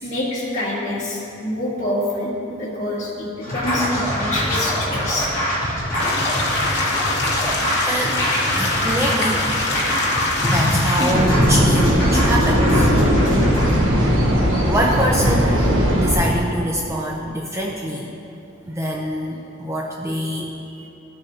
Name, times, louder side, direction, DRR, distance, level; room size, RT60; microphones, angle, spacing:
voice 1, 0.0-5.3 6.6-6.7 20.8-20.9, left 1 dB, 35° left, -6 dB, 1.8 m, -26 dB
Scratching (performance technique), 3.4-13.8, equal, 20° left, 2.2 m, -23 dB
sound 1, 6.0-11.1, left 2 dB, 55° left, 1.1 m, -25 dB
voice 2, 7.1-9.5 10.3-13.2 13.5-13.7 14.7-18.2 18.7-20.6, equal, 15° right, -2 dB, 0.5 m, -25 dB
sound 2, 11.1-16.4, equal, 75° right, 1.1 m, -18 dB
14.0 x 6.7 x 2.8 m, 2.8 s
head